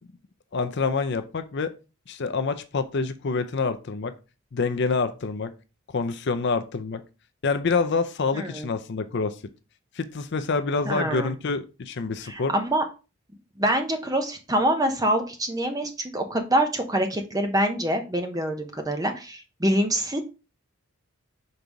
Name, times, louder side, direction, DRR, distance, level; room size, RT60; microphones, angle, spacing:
voice 1, 0.5-1.7 2.1-4.1 4.5-5.5 5.9-7.0 7.4-9.4 10.0-12.5, left 4 dB, 50° left, 10 dB, 0.5 m, -27 dB
voice 2, 8.3-8.7 10.9-11.3 12.3-12.8 13.6-20.2, right 1 dB, 15° right, 5 dB, 0.8 m, -25 dB
5.4 x 3.9 x 4.6 m, 0.31 s
head